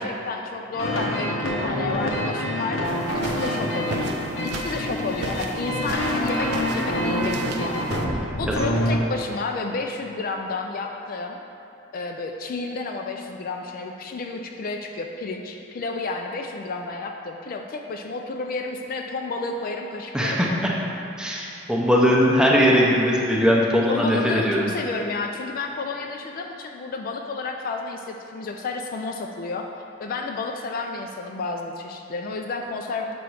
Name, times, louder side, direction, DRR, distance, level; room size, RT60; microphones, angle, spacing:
voice 1, 0.0-2.8 3.2-4.1 4.4-8.0 8.4-11.4 11.9-20.6 23.9-29.7 30.0-33.1, left 3 dB, 45° left, 3 dB, 0.3 m, -31 dB
sound 1, 0.7-9.0, equal, 85° left, 0.8 m, -26 dB
sound 2, 2.8-8.1, right 3 dB, 55° right, 0.4 m, -37 dB
voice 2, 20.1-20.7 21.2-24.6, equal, 5° right, -3 dB, 0.6 m, -20 dB
6.9 x 3.0 x 4.7 m, 2.9 s
head